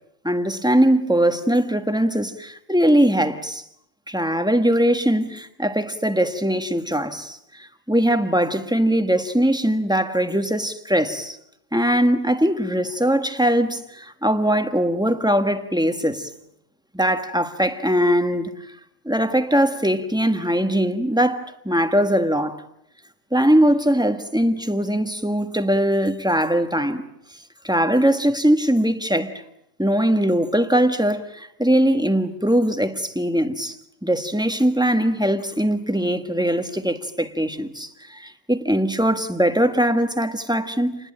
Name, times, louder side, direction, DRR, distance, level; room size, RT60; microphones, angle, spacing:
voice 1, 0.2-3.6 4.1-11.4 11.7-16.3 16.9-18.5 19.0-22.6 23.3-27.0 27.6-29.4 29.8-33.8 34.0-41.0, equal, 5° right, 1.4 m, -21 dB
29.0 x 20.5 x 8.8 m
omnidirectional pair, 1.3 m